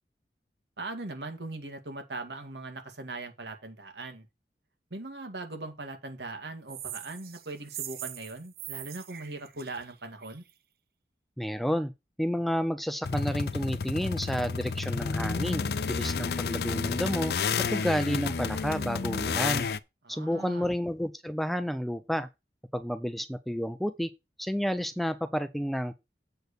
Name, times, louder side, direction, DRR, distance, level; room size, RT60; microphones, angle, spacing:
voice 1, 0.8-4.3 4.9-10.4 20.0-20.7, right 2 dB, 80° right, 2.0 m, -40 dB
sound 1, 6.7-10.5, right 11 dB, 60° right, 0.8 m, -42 dB
voice 2, 11.4-11.9 12.2-19.7 20.1-22.3 22.7-24.1 24.4-25.9, equal, ahead, 0.4 m, -30 dB
sound 2, 13.0-19.8, left 5 dB, 65° left, 0.5 m, -30 dB
7.9 x 4.4 x 6.7 m
head